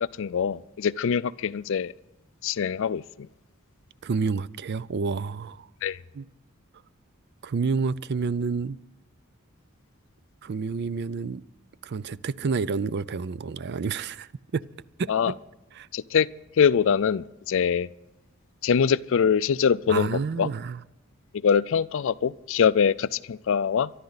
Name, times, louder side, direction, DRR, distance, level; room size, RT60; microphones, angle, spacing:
voice 1, 0.2-1.9 2.4-3.3 5.8-6.0 15.1-15.3 15.9-16.3 16.6-17.9 18.6-20.1 20.4-20.5 21.4-23.9, left 7 dB, 65° left, 0.4 m, -23 dB
voice 2, 4.0-5.7 6.1-6.3 7.4-8.8 10.4-11.4 11.8-14.6 15.0-15.4 15.7-15.9 19.9-20.8, right 4 dB, 50° right, 0.4 m, -29 dB
24.0 x 12.0 x 4.0 m
head